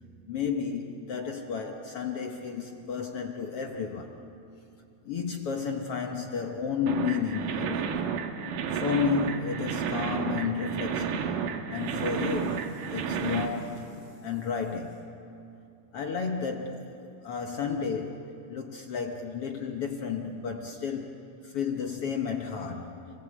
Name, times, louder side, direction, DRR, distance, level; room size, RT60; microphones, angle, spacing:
voice 1, 0.3-4.2 5.0-8.1 8.7-11.3 11.7-15.0 15.9-22.9, left 6 dB, 65° left, 1.5 m, -32 dB
sound 1, 6.9-13.5, right 7 dB, 75° right, 2.8 m, -31 dB
28.5 x 19.5 x 8.3 m
omnidirectional pair, 4.0 m